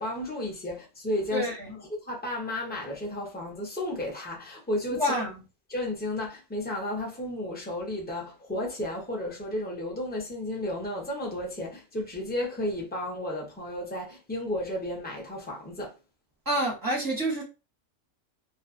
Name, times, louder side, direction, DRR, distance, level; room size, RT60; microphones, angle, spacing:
voice 1, 0.0-5.1 5.7-15.9, left 1 dB, 15° left, 0.4 m, -33 dB
voice 2, 1.3-1.7 4.9-5.4 16.5-17.4, right 1 dB, 20° right, 0.7 m, -28 dB
2.5 x 2.2 x 2.5 m
omnidirectional pair, 1.5 m